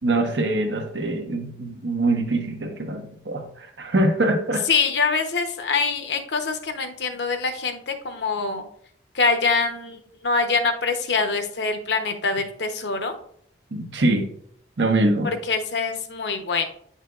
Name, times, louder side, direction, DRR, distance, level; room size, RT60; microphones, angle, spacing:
voice 1, 0.0-4.6 13.7-14.3 14.8-15.3, right 2 dB, 90° right, 4 dB, 1.2 m, -23 dB
voice 2, 4.7-8.7 9.1-13.2 15.4-16.7, left 4 dB, 80° left, 6 dB, 0.9 m, -24 dB
9.3 x 5.6 x 2.4 m, 0.66 s
head